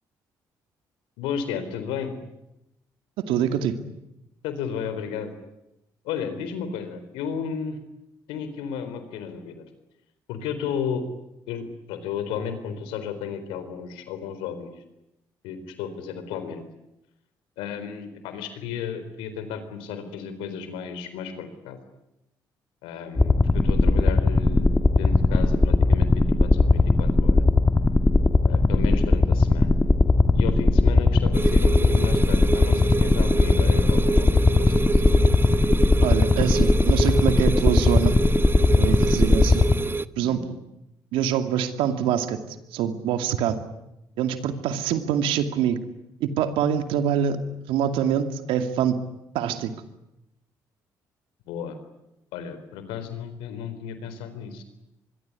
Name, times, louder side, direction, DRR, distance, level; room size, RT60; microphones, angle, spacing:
voice 1, 1.2-2.1 4.4-5.3 6.0-7.8 8.3-9.6 10.3-11.0 11.5-14.7 15.4-16.6 17.6-21.8 22.8-24.7 25.0-27.5 28.5-29.8 30.3-35.2 39.1-39.3 40.1-40.4 51.4-51.8 52.3-54.6, left 7 dB, 90° left, 10 dB, 4.1 m, -33 dB
voice 2, 3.3-3.7 36.0-38.2 38.8-39.6 40.2-40.4 41.1-42.4 42.7-43.6 44.2-45.8 46.2-47.4 47.7-49.0 49.3-49.7, right 9 dB, 80° right, 8 dB, 2.5 m, -24 dB
sound 1, 23.2-39.7, left 3 dB, 20° left, 2.2 m, -19 dB
sound 2, 31.3-40.1, right 3 dB, 25° right, 1.1 m, -28 dB
25.0 x 23.0 x 9.8 m, 0.89 s
supercardioid pair, 60°, 9 cm